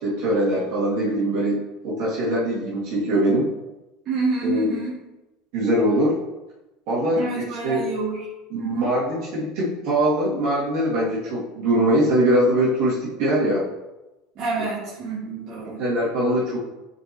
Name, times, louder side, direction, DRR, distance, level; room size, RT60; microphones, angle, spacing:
voice 1, 0.0-3.5 4.4-4.7 5.5-6.2 6.9-7.8 8.5-13.7 15.6-16.6, right 1 dB, 65° right, -7 dB, 2.6 m, -22 dB
voice 2, 4.1-4.9 7.1-8.2 8.6-8.9 14.4-15.8, right 3 dB, 45° right, -8 dB, 2.4 m, -28 dB
9.9 x 4.7 x 3.1 m, 1.0 s
supercardioid pair, 125°, 0 cm